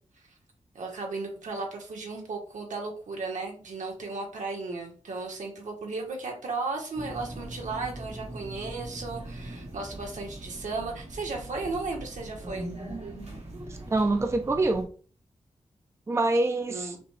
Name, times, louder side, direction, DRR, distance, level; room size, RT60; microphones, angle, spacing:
voice 1, 0.7-12.7 16.7-17.0, right 3 dB, 85° right, 1 dB, 1.3 m, -35 dB
sound 1, 6.9-14.8, right 1 dB, 60° right, 1.5 m, -41 dB
voice 2, 13.5-14.9 16.1-17.0, right 2 dB, 25° right, 6 dB, 0.5 m, -26 dB
5.8 x 2.3 x 3.3 m, 0.40 s
wide cardioid pair, 125°, 12 cm